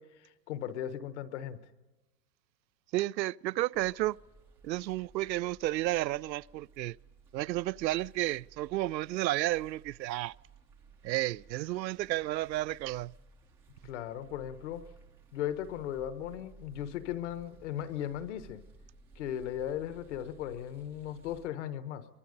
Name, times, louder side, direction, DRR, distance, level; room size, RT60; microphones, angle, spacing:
voice 1, 0.0-1.6 13.8-14.9 15.3-18.6 19.1-22.1, left 10 dB, 45° left, 1.3 m, -37 dB
voice 2, 2.9-4.2 4.6-7.0 7.3-10.3 11.0-13.1, right 16 dB, 85° right, 0.6 m, -32 dB
sound 1, 3.7-21.5, right 4 dB, 5° right, 0.5 m, -58 dB
23.5 x 21.5 x 5.2 m
hypercardioid pair, 155°, 50 cm